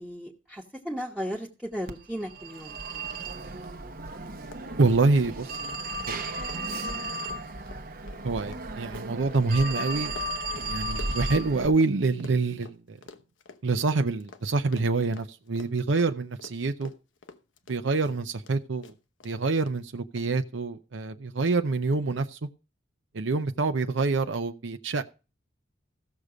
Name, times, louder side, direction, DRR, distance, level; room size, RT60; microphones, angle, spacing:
voice 1, 0.0-2.8, equal, 5° right, -3 dB, 1.1 m, -35 dB
Telephone, 1.9-11.7, right 1 dB, 50° right, 0.9 m, -35 dB
Run, 3.6-3.7 4.0-4.1 4.4-11.9 12.2-18.5 18.8-19.3 19.7-19.8 20.2-20.3, left 3 dB, 85° left, 1.0 m, -48 dB
voice 2, 4.8-5.8 6.1-6.4 8.2-10.2 10.6-13.0 13.6-16.9 17.7-18.9 19.2-22.4 23.1-25.0, right 3 dB, 75° right, 7 dB, 0.7 m, -26 dB
15.0 x 6.7 x 5.0 m, 0.33 s
head